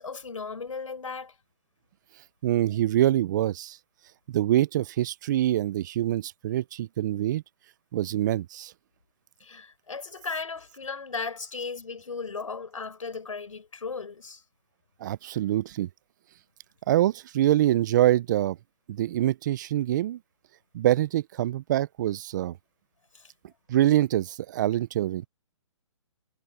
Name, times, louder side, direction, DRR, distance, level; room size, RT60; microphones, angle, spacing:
voice 1, 0.0-1.3 9.4-14.4 23.1-23.3, left 4 dB, 85° left, 6.0 m, -36 dB
voice 2, 2.4-3.8 4.3-7.4 7.9-8.7 15.0-15.9 16.9-18.6 18.9-20.2 20.7-22.5 23.7-25.3, right 13 dB, 35° right, 0.6 m, -25 dB
hypercardioid pair, 145°, 16 cm